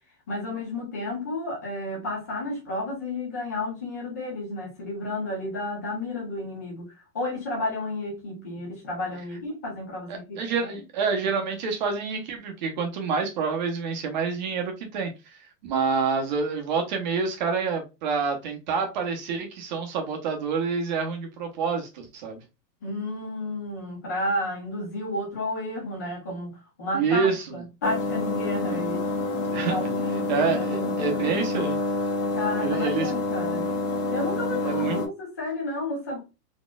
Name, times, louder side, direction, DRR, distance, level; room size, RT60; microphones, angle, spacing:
voice 1, 0.3-10.7 22.8-29.0 29.7-31.0 32.3-33.7 34.1-36.2, left 1 dB, 10° left, 0.4 m, -32 dB
voice 2, 10.1-22.4 26.9-27.5 29.5-29.8 30.3-31.8 32.6-33.1 34.6-35.0, right 5 dB, 30° right, 0.7 m, -27 dB
sound 1, 27.8-35.1, left 2 dB, 60° left, 1.4 m, -27 dB
4.1 x 2.9 x 2.2 m
supercardioid pair, 170°, 50 cm